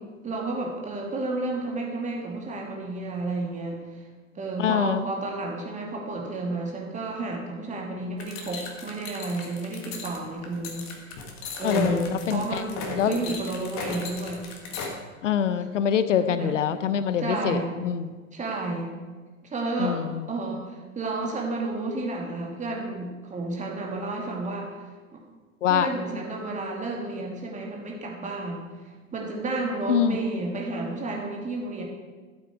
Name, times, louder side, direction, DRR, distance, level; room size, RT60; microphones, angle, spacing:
voice 1, 0.2-4.1 4.3-11.2 11.6-14.5 16.1-16.5 17.2-17.8 18.3-18.9 19.5-20.0 20.3-24.7 25.1-25.2 25.7-28.7 29.1-31.8, right 2 dB, 20° right, -1 dB, 2.3 m, -31 dB
voice 2, 4.6-5.0 11.6-12.6 13.0-13.2 15.2-18.1 19.8-20.2 25.6-25.9 29.9-30.2, left 9 dB, 65° left, 12 dB, 0.8 m, -25 dB
sound 1, 8.2-14.9, left 4 dB, 40° left, 1.9 m, -36 dB
13.0 x 8.1 x 4.6 m, 1.4 s
figure-of-eight pair, 90°, 40 cm